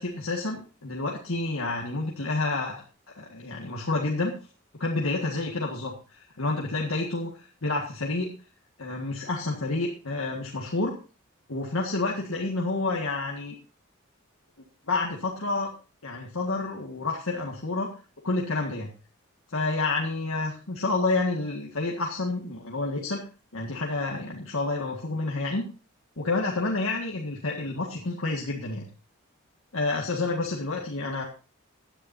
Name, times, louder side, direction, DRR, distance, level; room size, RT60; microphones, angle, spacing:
voice 1, 0.0-4.3 4.8-8.3 8.8-10.9 11.5-13.6 14.9-15.7 16.0-17.9 18.2-18.9 19.5-23.2 23.5-25.6 26.2-28.9 29.7-31.2, left 3 dB, 75° left, -1 dB, 1.8 m, -29 dB
16.5 x 10.0 x 2.7 m, 0.35 s
head